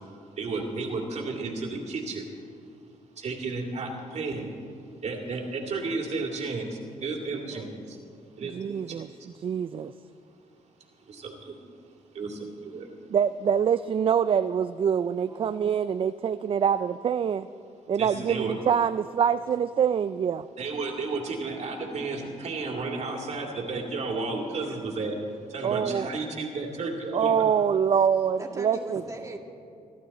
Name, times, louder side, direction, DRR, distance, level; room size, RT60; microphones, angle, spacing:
voice 1, 0.4-2.2 3.2-4.5 5.0-8.0 8.4-9.3 11.1-11.6 12.1-12.9 17.9-18.5 20.6-25.2 25.5-27.5, right 3 dB, 55° right, 1 dB, 2.5 m, -33 dB
voice 2, 8.4-9.1 9.4-9.9 13.1-17.5 17.9-20.5 25.6-26.1 27.1-29.0, right 8 dB, 40° right, 12 dB, 0.4 m, -25 dB
voice 3, 15.2-15.6 24.6-24.9 28.4-29.4, right 2 dB, 25° right, 1 dB, 2.0 m, -40 dB
23.5 x 12.0 x 4.2 m, 2.5 s
cardioid pair, 100°, 13 cm